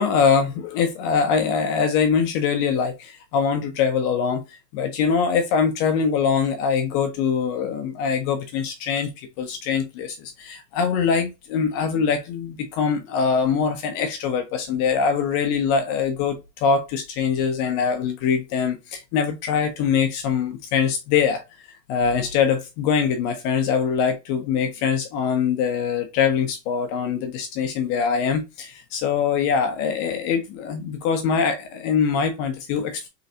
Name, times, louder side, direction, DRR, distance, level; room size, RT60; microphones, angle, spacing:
voice 1, 0.0-21.4 21.9-33.1, left 6 dB, 35° left, 0.6 m, -23 dB
3.8 x 3.3 x 2.7 m
supercardioid pair, 145°, 49 cm